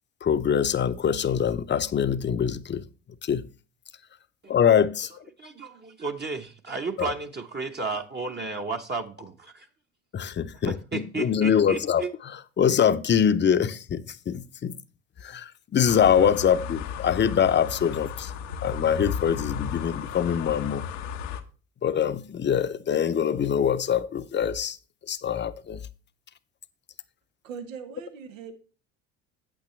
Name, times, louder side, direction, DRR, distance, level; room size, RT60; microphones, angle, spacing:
voice 1, 0.2-2.8 3.2-3.4 4.5-5.1 7.0-7.1 10.1-12.0 12.6-14.8 15.2-18.3 18.6-20.8 21.8-24.8 25.1-25.8, left 8 dB, 30° left, 0.7 m, -24 dB
voice 2, 5.4-9.7 10.5-12.1, right 4 dB, 25° right, 1.0 m, -33 dB
sound 1, 15.9-21.4, left 7 dB, 85° left, 0.9 m, -34 dB
voice 3, 27.4-28.5, right 6 dB, 85° right, 1.1 m, -40 dB
8.7 x 8.1 x 3.2 m
hypercardioid pair, 65°, 38 cm